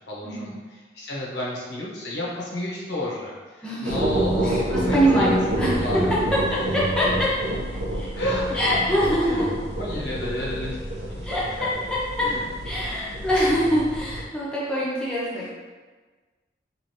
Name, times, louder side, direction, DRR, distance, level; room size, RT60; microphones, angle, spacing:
voice 1, 0.1-6.2 8.2-8.6 8.9-9.0 9.2-10.8 11.1-11.3 12.2-12.5 15.3-15.5, left 1 dB, 75° left, -5 dB, 0.8 m, -32 dB
voice 2, 3.6-3.9 4.4-5.9 6.3-7.3 7.7-8.1 8.5-9.5 11.2-11.7 12.2-12.3 12.6-15.5, equal, 5° left, -8 dB, 0.5 m, -24 dB
sound 1, 3.8-14.2, right 1 dB, 70° right, 0.5 m, -28 dB
3.2 x 2.4 x 2.7 m, 1.4 s
head